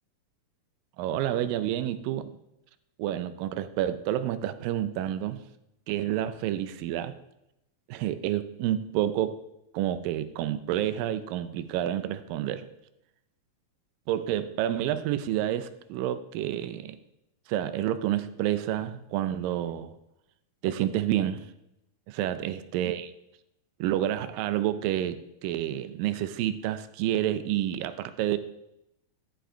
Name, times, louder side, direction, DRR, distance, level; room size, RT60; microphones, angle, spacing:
voice 1, 1.0-2.3 3.0-5.4 5.9-7.1 7.9-9.4 9.7-12.7 14.1-17.0 17.5-19.9 20.6-21.5 22.1-23.1 23.8-28.4, right 12 dB, 80° right, 12 dB, 2.3 m, -29 dB
12.5 x 5.3 x 4.4 m, 0.84 s
omnidirectional pair, 4.1 m